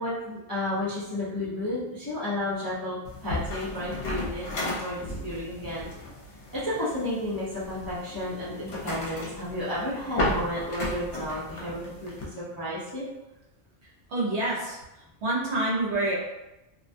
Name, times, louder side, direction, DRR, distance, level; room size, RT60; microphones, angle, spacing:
voice 1, 0.0-5.9 6.5-13.1, left 1 dB, 25° left, -10 dB, 0.4 m, -32 dB
sound 1, 3.1-12.3, left 1 dB, 70° left, 1.0 m, -35 dB
voice 2, 14.1-14.8 15.2-16.2, right 2 dB, 65° right, -5 dB, 1.1 m, -27 dB
2.6 x 2.2 x 2.6 m, 0.97 s
omnidirectional pair, 1.2 m